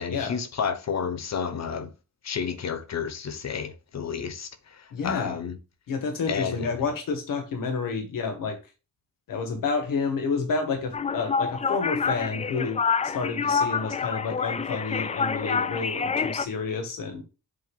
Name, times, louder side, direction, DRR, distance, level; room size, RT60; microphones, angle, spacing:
voice 1, 0.0-1.9 2.2-5.6 6.3-6.7, left 6 dB, 55° left, 1.0 m, -31 dB
voice 2, 4.9-5.4 5.9-8.6 9.3-17.2, left 4 dB, 90° left, 1.6 m, -30 dB
sound 1, 10.9-16.5, left 5 dB, 20° left, 0.3 m, -27 dB
7.8 x 2.7 x 5.4 m
cardioid pair, 110°, 32 cm